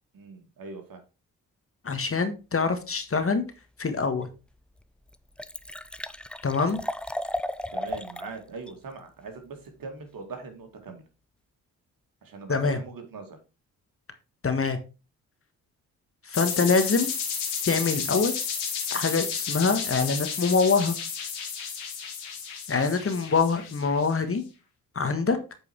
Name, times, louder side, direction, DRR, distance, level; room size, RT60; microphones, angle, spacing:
voice 1, 0.1-1.0 7.7-11.0 12.2-13.4, right 4 dB, 55° right, 5 dB, 2.3 m, -41 dB
voice 2, 1.8-3.4 3.8-4.3 6.4-6.8 12.5-12.8 14.4-14.8 16.2-17.1 17.7-18.3 18.9-21.0 22.7-24.4 24.9-25.4, left 4 dB, 30° left, 8 dB, 1.6 m, -24 dB
Liquid, 4.2-4.3 4.8-4.9 5.1-8.3 8.7-8.8, left 1 dB, ahead, 0.5 m, -34 dB
sound 1, 16.3-24.1, left 6 dB, 80° left, 2.3 m, -32 dB
8.6 x 4.7 x 4.6 m, 0.31 s
hypercardioid pair, 45°, 41 cm